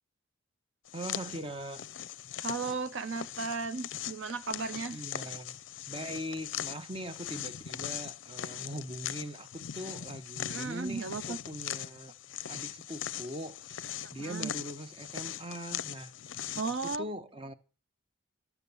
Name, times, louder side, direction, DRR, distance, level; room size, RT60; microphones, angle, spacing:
sound 1, 0.9-17.0, left 11 dB, 65° left, 0.5 m, -40 dB
voice 1, 0.9-1.8 4.9-5.6 5.9-12.1 12.5-17.5, equal, 25° right, 0.8 m, -41 dB
voice 2, 2.4-5.0 10.5-11.4 14.2-14.5 16.6-17.1, right 4 dB, 70° right, 0.6 m, -35 dB
12.0 x 7.1 x 6.9 m
head